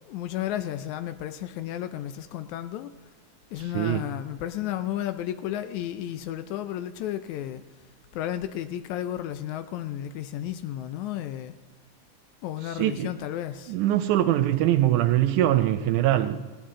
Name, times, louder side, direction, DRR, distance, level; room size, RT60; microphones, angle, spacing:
voice 1, 0.0-2.9 3.5-7.6 8.1-11.5 12.4-13.8, left 12 dB, 90° left, 1.6 m, -33 dB
voice 2, 3.6-4.1 12.6-13.1 13.7-16.5, right 13 dB, 80° right, 1.8 m, -23 dB
20.0 x 16.5 x 3.8 m
omnidirectional pair, 4.1 m